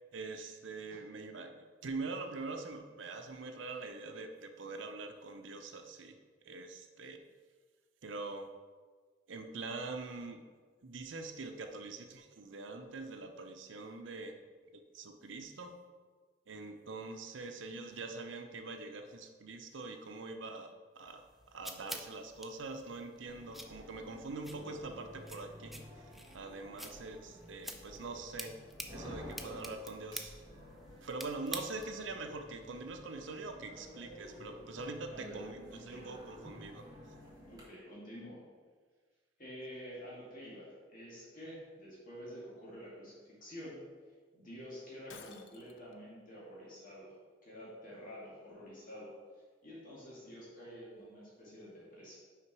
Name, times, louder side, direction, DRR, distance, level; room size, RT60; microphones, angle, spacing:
voice 1, 0.1-6.2 6.4-7.2 8.0-8.5 9.3-10.4 10.8-14.4 14.7-15.8 16.5-28.6 28.9-30.4 31.0-36.9, right 3 dB, 85° right, 6 dB, 0.7 m, -44 dB
sound 1, 21.1-32.1, equal, ahead, 0.4 m, -49 dB
sound 2, 23.3-37.6, equal, 20° right, 1.7 m, -52 dB
voice 2, 35.1-35.4 35.7-36.0 37.5-38.4 39.4-43.8 44.3-47.1 47.4-49.1 49.6-52.2, equal, 45° left, -7 dB, 2.1 m, -49 dB
Shatter, 45.1-45.9, left 6 dB, 85° left, 0.5 m, -53 dB
5.8 x 5.0 x 4.7 m, 1.5 s
head